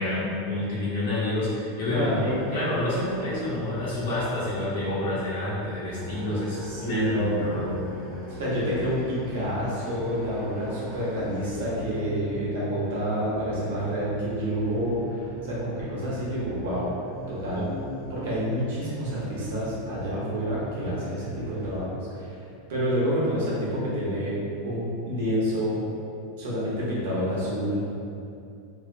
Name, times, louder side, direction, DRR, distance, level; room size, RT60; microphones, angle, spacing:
voice 1, 0.0-8.0 17.5-17.7, left 1 dB, 90° left, -9 dB, 1.0 m, -29 dB
voice 2, 1.8-2.4 6.7-7.5 8.3-16.9 17.3-17.7 18.1-22.4 22.7-24.3 24.6-25.8 26.4-27.8, equal, 80° right, -7 dB, 0.8 m, -28 dB
sound 1, 1.9-21.8, equal, 25° right, 1.1 m, -41 dB
2.6 x 2.0 x 2.5 m, 2.5 s
supercardioid pair, 165°, 0 cm